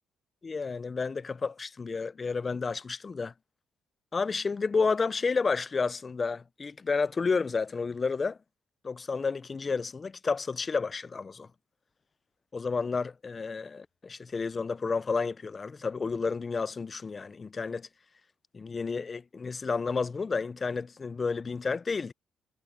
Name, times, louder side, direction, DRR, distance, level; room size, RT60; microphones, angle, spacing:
voice 1, 0.4-3.3 4.1-8.4 8.8-11.5 12.5-17.9 18.5-22.1, left 4 dB, 35° left, 0.5 m, -31 dB
cardioid pair, 90°, 0 cm